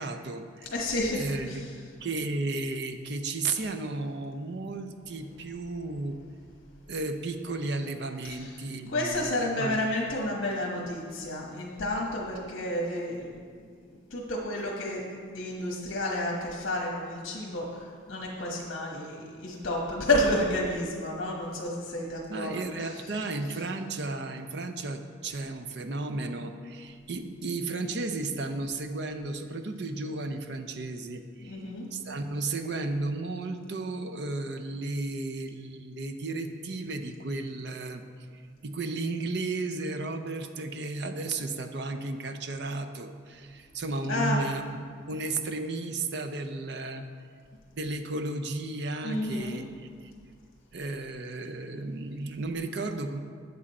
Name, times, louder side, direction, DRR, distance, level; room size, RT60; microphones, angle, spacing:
voice 1, 0.0-0.7 1.1-1.7 2.0-6.2 6.9-9.8 22.3-31.6 31.9-38.0 38.6-47.0 47.7-49.6 50.0-50.1 50.7-53.2, right 2 dB, 55° right, 6 dB, 0.6 m, -34 dB
voice 2, 0.7-1.6 8.2-8.4 8.8-13.3 13.9-15.0 15.3-22.5 31.4-31.9 44.1-44.4 49.0-49.6, left 1 dB, 75° left, -2 dB, 1.2 m, -30 dB
8.1 x 7.5 x 4.2 m, 2.1 s
head